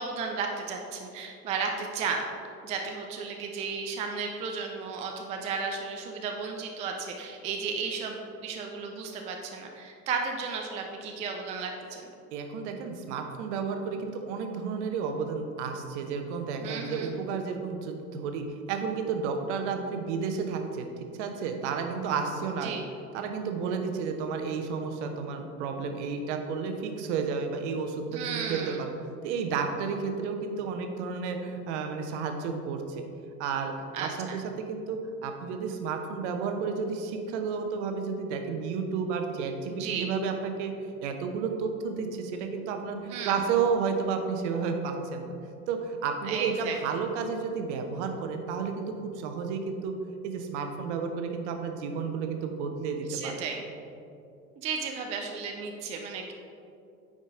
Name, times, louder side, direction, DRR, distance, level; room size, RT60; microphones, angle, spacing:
voice 1, 0.0-2.3 2.6-12.1 16.6-17.1 22.6-22.8 28.1-28.8 33.9-34.4 39.7-40.1 43.1-43.4 46.2-46.8 53.1-53.6 54.6-56.3, right 5 dB, 15° right, 2 dB, 0.4 m, -34 dB
voice 2, 12.3-20.9 21.2-22.7 23.1-28.9 29.2-33.0 33.4-33.7 34.0-40.7 41.0-45.3 45.7-49.9 50.2-53.4, right 5 dB, 50° right, 5 dB, 1.0 m, -32 dB
9.2 x 5.1 x 3.7 m, 2.6 s
figure-of-eight pair, 80°, 45 cm